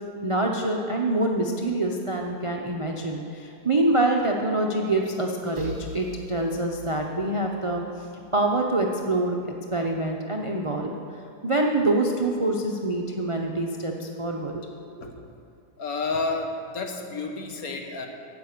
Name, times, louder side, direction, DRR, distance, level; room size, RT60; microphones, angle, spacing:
voice 1, 0.2-8.1 8.3-10.9 11.4-15.0, right 2 dB, 45° right, 1 dB, 0.4 m, -26 dB
sound 1, 5.6-9.2, right 1 dB, 65° right, 1.7 m, -42 dB
voice 2, 15.8-18.1, left 3 dB, 60° left, 3 dB, 1.5 m, -30 dB
12.0 x 8.6 x 6.7 m, 2.5 s
omnidirectional pair, 1.8 m